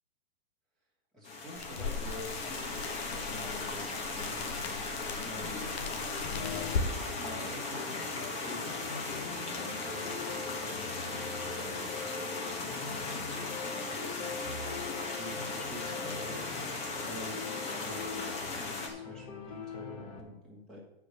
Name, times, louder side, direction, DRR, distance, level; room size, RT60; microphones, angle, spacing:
voice 1, 1.1-4.5 5.2-5.7 6.3-8.8 9.4-12.3 13.0-16.7 17.0-17.4 17.7-20.8, left 1 dB, ahead, -5 dB, 1.8 m, -48 dB
sound 1, 1.2-18.9, left 3 dB, 20° left, 1.4 m, -37 dB
sound 2, 1.5-6.9, left 5 dB, 80° left, 1.3 m, -38 dB
sound 3, 5.4-20.2, left 5 dB, 35° left, 1.8 m, -43 dB
9.6 x 4.9 x 6.8 m, 0.92 s
supercardioid pair, 170°, 31 cm